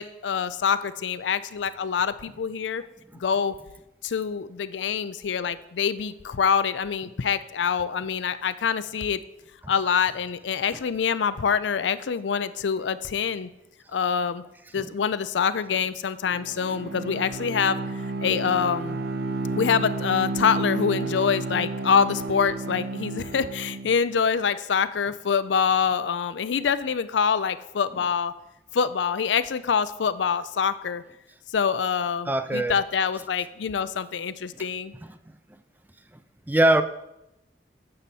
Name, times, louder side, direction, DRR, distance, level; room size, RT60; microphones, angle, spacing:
voice 1, 0.0-2.8 3.2-3.5 4.0-9.2 9.7-13.5 13.9-14.4 14.7-17.8 18.2-19.0 19.5-28.3 28.7-31.0 31.5-34.9, left 6 dB, 85° left, 15 dB, 0.5 m, -25 dB
Bowed string instrument, 16.3-24.0, right 2 dB, 60° right, 0.6 m, -31 dB
voice 2, 32.3-32.8 36.5-36.8, right 1 dB, 10° right, 10 dB, 0.4 m, -21 dB
9.7 x 7.8 x 4.1 m, 0.89 s
head